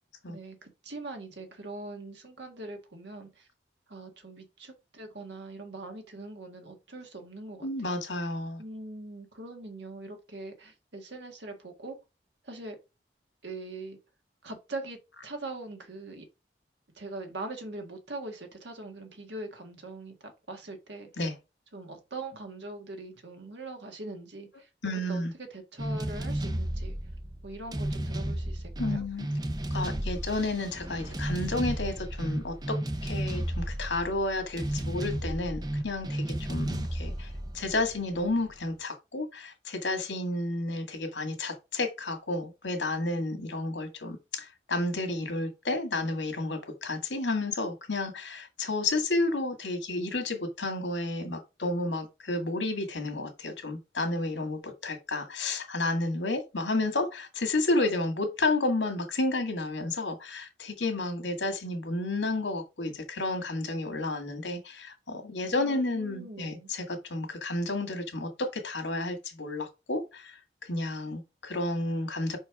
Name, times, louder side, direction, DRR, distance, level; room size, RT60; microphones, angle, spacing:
voice 1, 0.3-3.5 3.9-7.7 8.1-8.2 8.6-12.0 12.4-12.8 13.4-14.0 14.4-16.3 16.9-21.1 21.7-25.2 25.5-26.9 27.4-29.1 65.5-66.7, right 2 dB, 75° right, 1.7 m, -42 dB
voice 2, 7.6-8.6 21.2-21.3 24.8-25.3 28.8-29.3 29.7-72.4, left 2 dB, 80° left, 1.8 m, -31 dB
sound 1, 25.8-38.5, right 1 dB, 20° right, 0.6 m, -33 dB
5.4 x 4.5 x 4.7 m
head